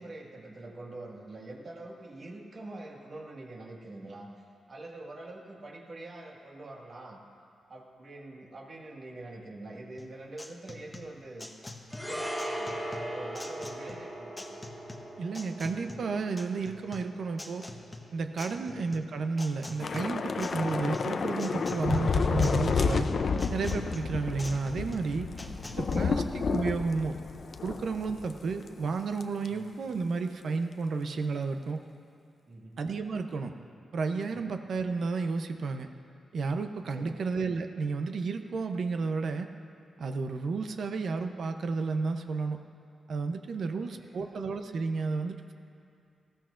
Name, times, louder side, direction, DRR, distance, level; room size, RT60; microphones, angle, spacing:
voice 1, 0.0-7.2 7.7-11.5 12.0-14.4 18.5-18.7 25.1-26.2 29.5-29.6 32.5-32.8 34.3-34.5 36.9-37.2 43.7-44.4, right 2 dB, 45° right, -1 dB, 1.8 m, -45 dB
sound 1, 10.0-26.0, left 2 dB, 15° left, 0.9 m, -46 dB
sound 2, 11.9-20.4 20.6-20.8, right 1 dB, ahead, 2.4 m, -40 dB
voice 2, 15.2-17.6 18.1-23.1 23.5-25.3 25.8-27.2 27.6-31.8 32.8-33.5 33.9-35.9 36.3-39.5 40.0-42.6 43.1-45.5, right 4 dB, 65° right, 6 dB, 0.7 m, -32 dB
Thunder / Rain, 19.8-28.4 28.7-28.9 29.2-29.5, left 5 dB, 50° left, 0.5 m, -30 dB
19.5 x 14.5 x 2.5 m, 2.5 s
wide cardioid pair, 120°, 0 cm